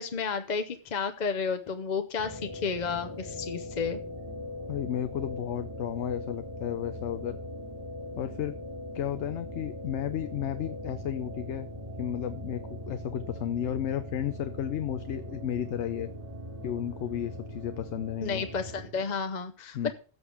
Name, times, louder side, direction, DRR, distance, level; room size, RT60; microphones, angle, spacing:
voice 1, 0.0-4.0 18.2-19.9, left 5 dB, 45° left, 8 dB, 0.9 m, -32 dB
sound 1, 2.2-18.9, left 1 dB, 30° right, 2.6 m, -40 dB
voice 2, 4.7-7.4 8.2-8.6 8.9-11.7 12.0-16.1 16.6-18.5 19.7-19.9, left 10 dB, 85° left, 10 dB, 0.9 m, -33 dB
16.5 x 6.8 x 3.4 m, 0.38 s
omnidirectional pair, 1.1 m